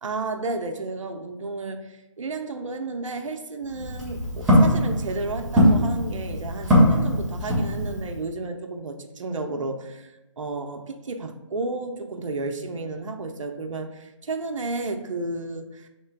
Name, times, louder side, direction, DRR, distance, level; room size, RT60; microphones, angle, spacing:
voice 1, 0.0-15.9, right 3 dB, 75° right, 5 dB, 0.5 m, -32 dB
Walk footsteps, 3.6-8.2, equal, ahead, 0.3 m, -21 dB
3.2 x 2.9 x 4.5 m, 1.0 s
hypercardioid pair, 155°, 16 cm